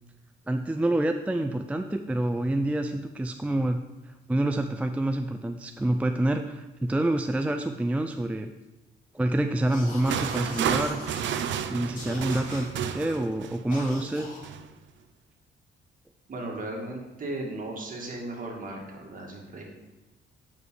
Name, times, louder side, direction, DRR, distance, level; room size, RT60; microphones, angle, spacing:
voice 1, 0.5-3.8 4.1-8.5 9.1-11.0 11.7-14.3, right 1 dB, 5° right, 6 dB, 0.4 m, -27 dB
sound 1, 9.6-13.7 14.4-14.7, right 8 dB, 70° right, 0.6 m, -31 dB
sound 2, 9.7-11.6 11.9-13.2 13.7-14.5, left 2 dB, 40° left, 2.6 m, -42 dB
voice 2, 16.3-19.6, right 2 dB, 45° right, 0 dB, 2.2 m, -36 dB
8.3 x 5.1 x 4.7 m, 1.1 s
cardioid pair, 90°, 20 cm